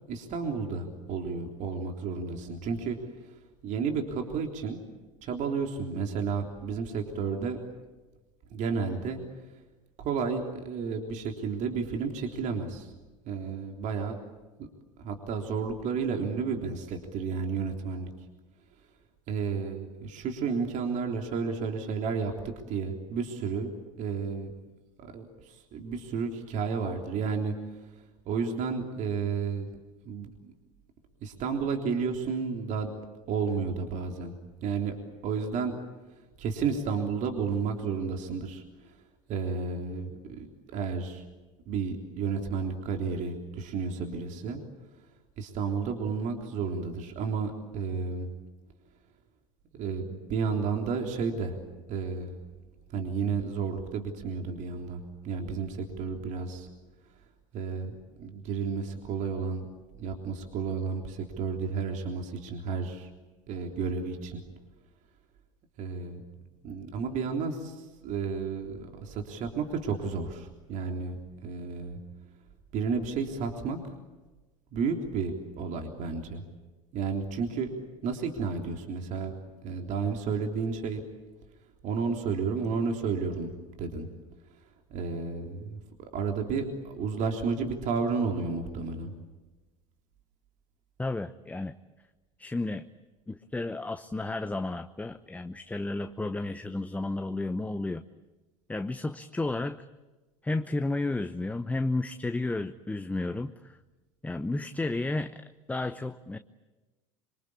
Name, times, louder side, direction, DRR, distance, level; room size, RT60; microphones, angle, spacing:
voice 1, 0.1-3.0 3.2-3.3 3.6-4.8 5.2-7.6 8.5-9.2 10.0-12.9 13.2-14.2 14.6-14.7 15.0-18.1 19.3-23.7 24.0-24.5 25.0-27.8 28.3-29.7 30.0-30.5 31.2-32.9 33.3-34.3 34.6-34.9 35.2-35.8 36.4-39.0 39.3-41.2 41.7-44.6 45.4-48.3 49.7-51.6 51.9-52.3 52.9-56.7 57.5-59.7 59.9-63.1 63.5-64.4 65.8-66.3 66.6-72.0 72.7-73.8 74.7-76.4 76.9-77.7 78.0-79.3 79.6-81.0 81.8-84.1 84.9-89.1, right 5 dB, 45° right, 3 dB, 3.6 m, -32 dB
voice 2, 91.0-91.7 92.4-92.8 93.3-98.0 98.7-99.8 100.4-103.8 104.2-106.4, left 2 dB, 10° left, 10 dB, 0.9 m, -32 dB
26.0 x 24.5 x 8.6 m, 1.2 s
figure-of-eight pair, 75°, 17 cm